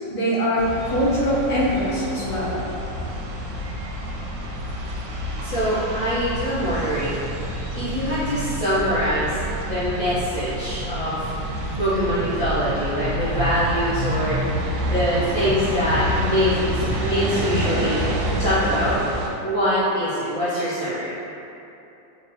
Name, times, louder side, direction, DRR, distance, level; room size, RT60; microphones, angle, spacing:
voice 1, 0.1-2.6, equal, 75° left, -10 dB, 0.4 m, -22 dB
sound 1, 0.6-19.3, right 1 dB, 90° right, 1.3 m, -28 dB
voice 2, 5.4-7.2 7.7-11.3 11.7-14.4 14.8-18.0 18.4-19.0 19.4-21.1, equal, 55° left, -14 dB, 1.1 m, -24 dB
4.4 x 2.5 x 2.7 m, 2.8 s
omnidirectional pair, 2.1 m